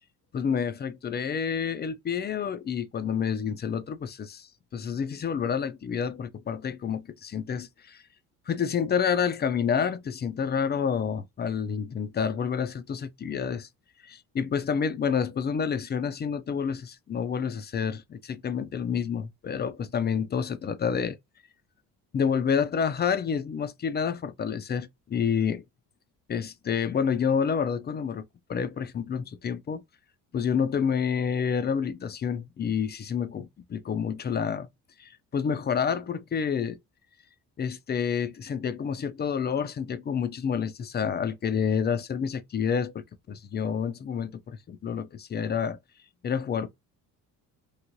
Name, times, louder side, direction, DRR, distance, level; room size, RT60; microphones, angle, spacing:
voice 1, 0.3-8.0 8.5-13.7 14.0-21.2 22.1-25.6 26.3-28.2 28.5-29.8 30.3-34.7 35.0-36.8 37.6-45.8 46.2-46.7, left 7 dB, 25° left, 0.4 m, -29 dB
3.2 x 2.6 x 2.5 m
hypercardioid pair, 55°, 45 cm